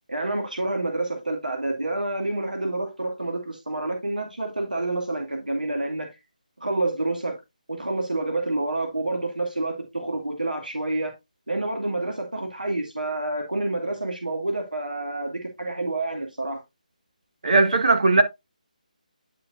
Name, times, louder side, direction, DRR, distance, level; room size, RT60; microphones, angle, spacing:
voice 1, 0.1-6.1 6.6-7.4 7.7-11.1 11.5-16.6, right 2 dB, 80° right, 2.2 m, -28 dB
voice 2, 17.4-18.2, right 3 dB, 60° right, 1.7 m, -18 dB
10.0 x 5.7 x 2.5 m
figure-of-eight pair, 150°, 4 cm